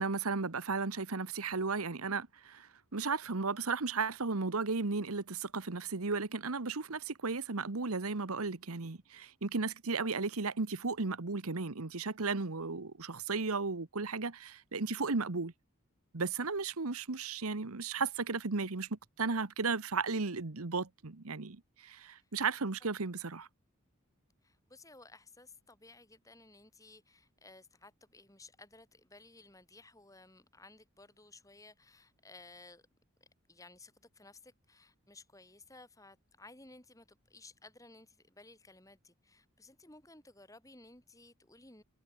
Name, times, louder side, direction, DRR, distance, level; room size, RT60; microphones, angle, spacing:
voice 1, 0.0-15.5 16.1-23.5, right 4 dB, 85° right, 1.3 m, -35 dB
voice 2, 24.4-32.8 33.5-41.8, left 2 dB, 15° left, 3.9 m, -57 dB
head